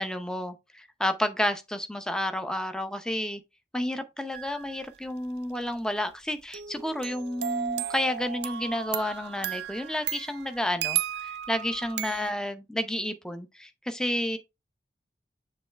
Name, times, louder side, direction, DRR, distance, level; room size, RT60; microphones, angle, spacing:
voice 1, 0.0-3.4 3.7-14.4, left 1 dB, 5° left, 0.6 m, -31 dB
sound 1, 4.3-4.8 6.5-12.3, right 10 dB, 75° right, 0.5 m, -34 dB
6.8 x 3.1 x 4.4 m
head